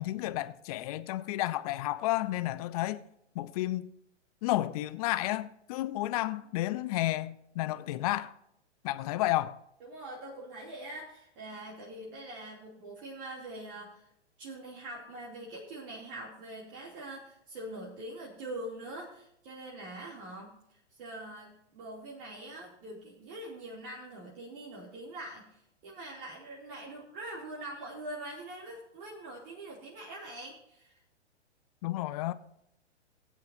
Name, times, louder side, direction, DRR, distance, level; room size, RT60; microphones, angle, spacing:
voice 1, 0.0-3.0 3.3-3.9 4.4-8.3 8.8-9.6 31.8-32.3, left 16 dB, 35° left, 0.5 m, -31 dB
voice 2, 9.8-14.1 14.4-31.0, right 1 dB, 45° right, 2.9 m, -44 dB
18.0 x 9.0 x 2.7 m
figure-of-eight pair, 115°, 35 cm